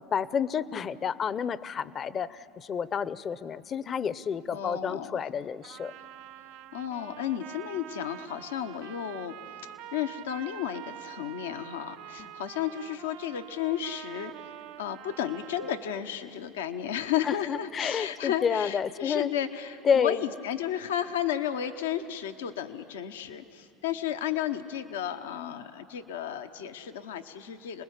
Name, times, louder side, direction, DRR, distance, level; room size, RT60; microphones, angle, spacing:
voice 1, 0.0-5.9 12.2-12.3 17.2-19.3 19.8-20.2, left 7 dB, 40° left, 18 dB, 0.6 m, -30 dB
voice 2, 4.5-5.2 6.7-14.3 14.8-27.8, left 10 dB, 85° left, 8 dB, 0.9 m, -33 dB
Trumpet, 5.6-16.0, right 12 dB, 65° right, 0.6 m, -46 dB
28.0 x 20.0 x 8.2 m, 2.6 s
hypercardioid pair, 85°, 0 cm